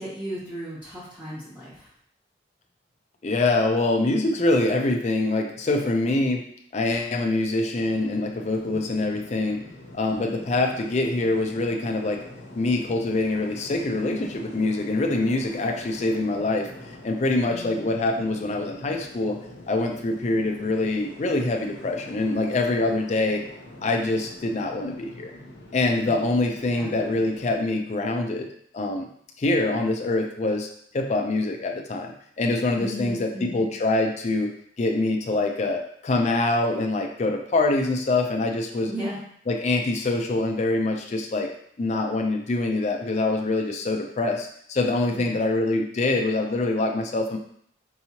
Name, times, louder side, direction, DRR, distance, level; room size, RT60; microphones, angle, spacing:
voice 1, 0.0-1.9 8.6-8.8 17.5-17.9 26.0-26.2 26.7-27.0 32.7-33.7 38.9-39.2 45.1-45.4, equal, 10° right, -11 dB, 0.9 m, -36 dB
voice 2, 3.2-6.5 6.7-9.6 9.9-12.2 12.5-16.7 17.0-19.4 19.7-23.4 23.8-25.3 25.7-28.5 28.7-29.1 29.4-30.7 30.9-34.5 34.8-38.9 39.5-41.5 41.8-47.4, left 2 dB, 40° left, 2 dB, 0.4 m, -24 dB
sound 1, 7.8-27.6, left 1 dB, 85° left, 0.9 m, -44 dB
4.6 x 2.9 x 2.8 m, 0.65 s
head